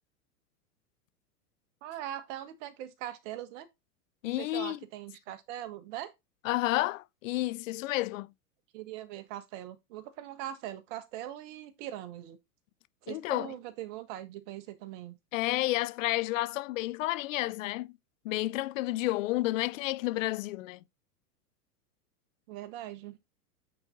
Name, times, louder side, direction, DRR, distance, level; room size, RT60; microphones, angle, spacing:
voice 1, 1.8-3.7 4.2-6.1 8.7-12.4 13.0-15.2 22.5-23.2, right 12 dB, 50° right, 1.4 m, -41 dB
voice 2, 4.2-4.8 6.4-8.3 13.1-13.5 15.3-17.9 18.2-20.8, left 17 dB, 55° left, 0.5 m, -31 dB
8.4 x 4.2 x 3.8 m
hypercardioid pair, 125°, 48 cm